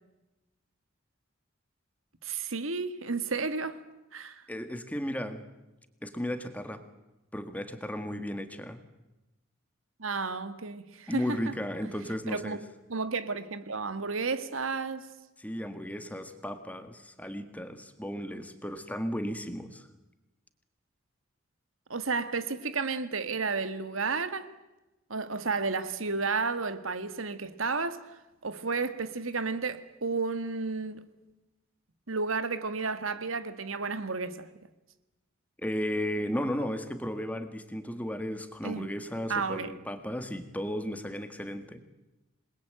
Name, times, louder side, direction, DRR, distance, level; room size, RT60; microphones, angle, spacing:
voice 1, 2.2-3.8 4.1-4.4 10.0-11.5 12.3-12.6 12.9-15.1 21.9-24.5 25.1-31.0 32.1-34.5 38.6-38.9 39.3-39.7, right 4 dB, 80° right, 1.7 m, -32 dB
voice 2, 4.5-5.5 6.0-6.8 7.3-8.8 11.1-12.6 15.4-19.9 35.6-41.8, equal, 5° left, 1.9 m, -35 dB
27.5 x 21.5 x 9.0 m
head